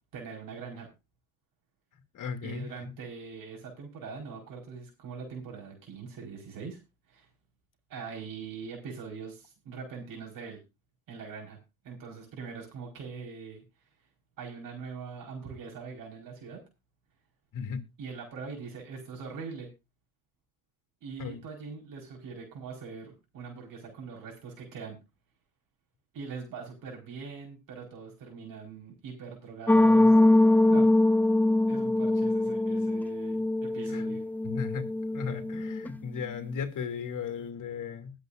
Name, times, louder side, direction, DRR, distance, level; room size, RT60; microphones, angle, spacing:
voice 1, 0.1-0.9 2.4-6.8 7.1-7.3 7.9-10.6 11.1-11.6 11.8-13.6 14.4-16.6 18.0-19.7 21.0-25.0 26.1-30.9 31.7-34.2, right 5 dB, 70° right, 4.7 m, -42 dB
voice 2, 2.1-2.7 17.5-17.8 21.2-21.4 33.9-34.0 34.4-34.9 35.1-38.1, left 6 dB, 65° left, 2.6 m, -35 dB
sound 1, 29.7-35.9, left 2 dB, 5° left, 0.5 m, -23 dB
21.5 x 8.2 x 2.6 m
cardioid pair, 95°, 35 cm